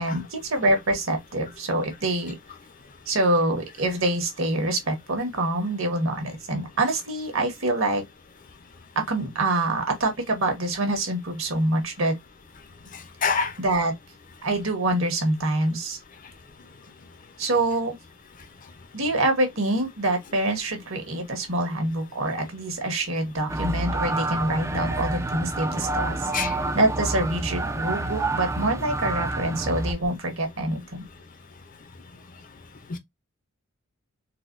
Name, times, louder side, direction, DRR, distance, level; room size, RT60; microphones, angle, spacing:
voice 1, 0.0-2.4 3.1-8.0 8.9-12.2 13.6-13.9 14.4-16.0 17.4-17.9 18.9-26.3 26.7-31.0, right 1 dB, 60° right, 1.3 m, -25 dB
voice 2, 12.9-13.5 26.3-26.6 32.9-33.0, left 5 dB, 35° left, 0.6 m, -26 dB
sound 1, 23.5-29.9, right 2 dB, 15° right, 0.3 m, -28 dB
4.0 x 2.2 x 2.4 m
head